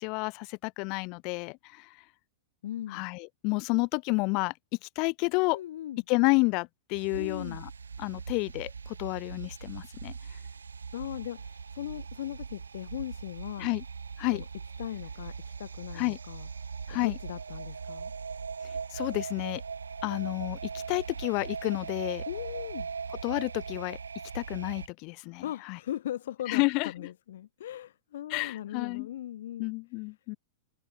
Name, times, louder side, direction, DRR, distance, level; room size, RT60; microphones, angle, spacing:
voice 1, 0.0-1.9 2.9-4.5 5.0-5.6 6.1-7.7 8.0-10.1 13.6-13.8 14.2-14.4 15.9-16.2 16.9-17.2 18.9-19.6 20.0-22.2 23.2-24.0 24.3-25.8 26.5-26.9 28.3-29.1 29.6-30.4, left 30 dB, 40° left, 2.2 m, -30 dB
voice 2, 2.6-3.1 5.5-6.0 7.1-7.6 10.9-13.7 14.3-14.4 14.8-16.5 16.9-18.1 22.3-22.9 25.4-29.7, left 12 dB, 55° left, 1.2 m, -39 dB
sound 1, 6.9-24.9, right 5 dB, 75° right, 1.1 m, -40 dB
figure-of-eight pair, 100°, 0 cm